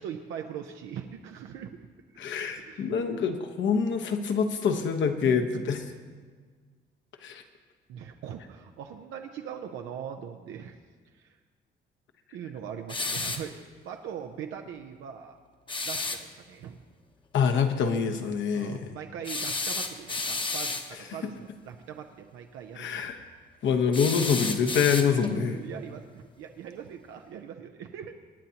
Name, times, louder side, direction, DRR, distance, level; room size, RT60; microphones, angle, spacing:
voice 1, 0.0-1.8 2.5-2.9 5.2-5.6 7.3-7.4 7.9-10.7 11.1-11.4 12.3-15.4 15.8-16.8 18.5-23.0 25.5-28.1, right 8 dB, 85° right, 4 dB, 0.7 m, -41 dB
voice 2, 2.2-5.8 7.2-7.4 17.3-18.9 22.8-23.2 23.6-25.7, left 6 dB, 70° left, 6 dB, 1.1 m, -26 dB
sound 1, 12.9-13.5 15.7-16.2 19.2-20.9 23.9-25.4, left 3 dB, 25° left, 0.9 m, -32 dB
23.0 x 9.2 x 2.9 m, 1.5 s
cardioid pair, 90°, 20 cm